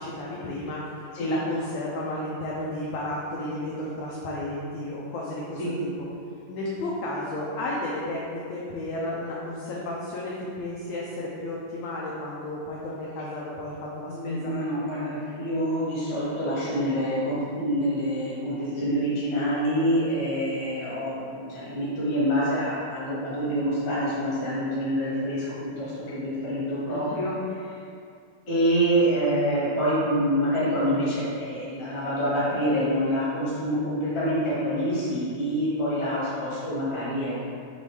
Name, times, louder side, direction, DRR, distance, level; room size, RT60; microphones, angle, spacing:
voice 1, 0.0-6.1 6.5-14.5 26.9-27.2, left 1 dB, 85° left, -5 dB, 1.5 m, -33 dB
voice 2, 14.1-27.3 27.6-27.7 28.5-37.4, equal, 50° left, -9 dB, 0.7 m, -26 dB
5.4 x 3.0 x 3.2 m, 2.4 s
omnidirectional pair, 3.5 m